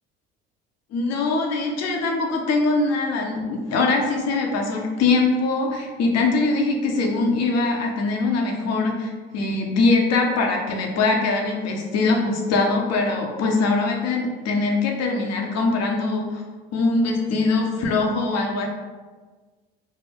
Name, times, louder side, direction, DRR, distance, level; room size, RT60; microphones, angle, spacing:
voice 1, 0.9-16.4 16.7-18.7, left 3 dB, 55° left, 1 dB, 0.8 m, -22 dB
3.3 x 2.1 x 3.5 m, 1.4 s
hypercardioid pair, 65°, 30 cm